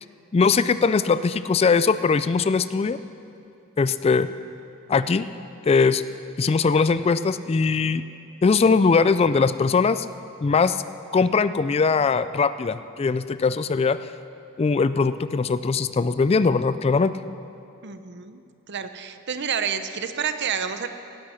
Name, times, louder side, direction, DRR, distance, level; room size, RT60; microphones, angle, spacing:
voice 1, 0.3-3.0 3.8-4.3 4.9-5.3 5.7-6.0 6.4-8.0 8.4-10.1 10.4-10.8 11.1-14.0 14.6-17.1, left 4 dB, 30° left, 14 dB, 0.3 m, -20 dB
voice 2, 17.8-18.4 18.7-20.9, right 7 dB, 55° right, 9 dB, 0.8 m, -29 dB
17.5 x 11.5 x 6.5 m, 2.7 s
head